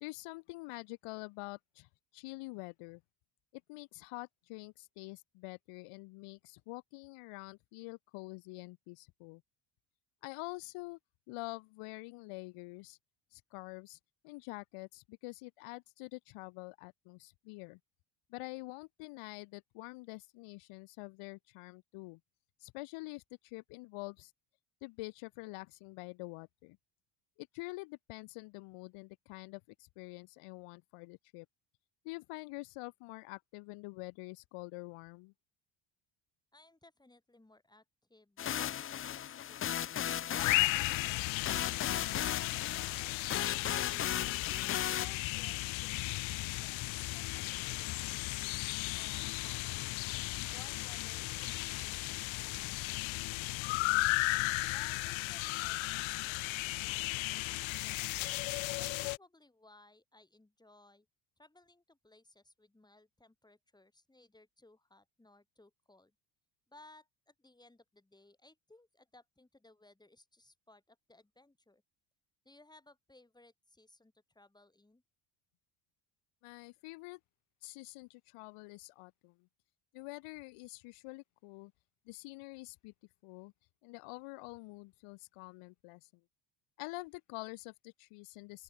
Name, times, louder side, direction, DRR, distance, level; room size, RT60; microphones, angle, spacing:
voice 1, 0.0-3.0 3.7-9.4 10.2-11.0 11.3-13.0 13.3-14.0 14.2-17.8 18.3-22.2 22.6-24.3 24.8-26.8 27.4-31.5 32.0-35.3 76.4-77.2 77.6-79.5 79.9-81.7 82.1-82.9 83.2-83.5 83.8-86.1 86.8-88.6, left 24 dB, 90° left, 1.2 m, -46 dB
voice 2, 36.5-37.8 38.1-39.7 45.0-49.9 50.5-54.2 54.7-58.0 58.8-61.1 61.4-66.1 66.7-71.8 72.4-75.0, left 2 dB, 10° left, 7.5 m, -61 dB
sound 1, 38.4-45.1, left 10 dB, 30° left, 0.4 m, -36 dB
sound 2, 40.4-59.2, left 21 dB, 65° left, 0.7 m, -35 dB
open air
cardioid pair, 145°, 50 cm